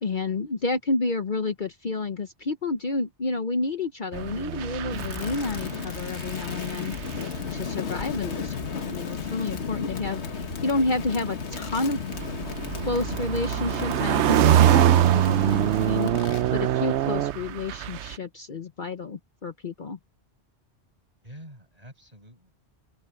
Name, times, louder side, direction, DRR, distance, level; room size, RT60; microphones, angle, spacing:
voice 1, 0.0-6.9 7.5-12.0 12.8-20.0, left 3 dB, 45° left, 1.0 m, -30 dB
sound 1, 4.1-6.1 6.3-7.6 8.6-8.9 11.0-18.2, right 11 dB, 80° right, 0.9 m, -23 dB
Crackle, 4.9-16.5, left 6 dB, 75° left, 1.6 m, -34 dB
voice 2, 21.1-22.5, equal, 35° right, 8.0 m, -47 dB
open air
omnidirectional pair, 1.1 m